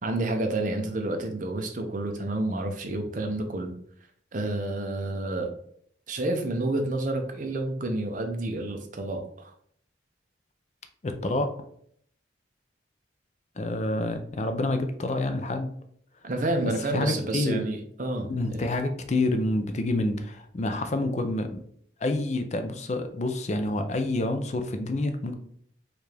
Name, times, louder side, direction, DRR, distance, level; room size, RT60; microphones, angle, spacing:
voice 1, 0.0-3.7 4.3-5.5 6.1-9.5 16.2-18.6, right 2 dB, 45° right, 4 dB, 0.6 m, -29 dB
voice 2, 11.0-11.5 13.6-15.7 16.9-17.6 18.3-21.6 22.0-25.3, left 2 dB, 35° left, 7 dB, 0.4 m, -28 dB
4.6 x 2.4 x 3.3 m, 0.65 s
head